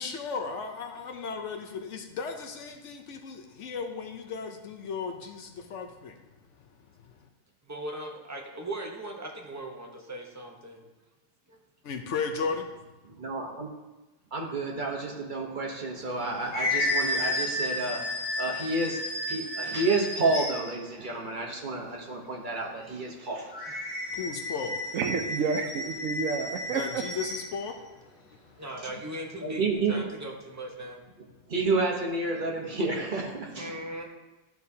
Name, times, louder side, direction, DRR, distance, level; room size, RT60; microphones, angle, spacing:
voice 1, 0.0-6.2 11.8-12.6 24.1-24.8 26.7-27.8, left 5 dB, 65° left, 5 dB, 0.9 m, -35 dB
voice 2, 7.7-10.9 11.5-11.6 28.6-31.0 33.6-34.0, right 1 dB, 15° right, 0 dB, 0.8 m, -39 dB
voice 3, 13.0-13.7 14.3-19.0 19.3-23.8 29.4-30.1 31.5-33.7, right 3 dB, 40° right, 0 dB, 1.0 m, -30 dB
sound 1, 16.0-20.8 23.5-27.5, left 1 dB, 45° left, 1.5 m, -32 dB
voice 4, 24.9-27.0, right 5 dB, 75° right, 6 dB, 1.0 m, -30 dB
12.0 x 4.7 x 2.7 m, 1.1 s
omnidirectional pair, 1.4 m